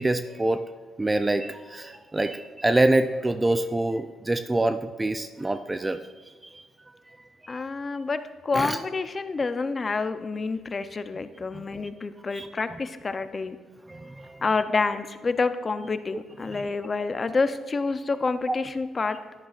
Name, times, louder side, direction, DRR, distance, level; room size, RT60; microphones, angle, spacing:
voice 1, 0.0-6.0 7.5-7.6 8.5-8.8 11.5-11.6 12.3-12.5 13.9-14.4 16.5-16.6 18.5-18.6, right 2 dB, 15° right, 9 dB, 0.4 m, -26 dB
voice 2, 7.5-13.6 14.4-19.2, left 4 dB, 35° left, 10 dB, 0.6 m, -28 dB
11.0 x 10.5 x 2.5 m, 1.5 s
cardioid pair, 90°, 0 cm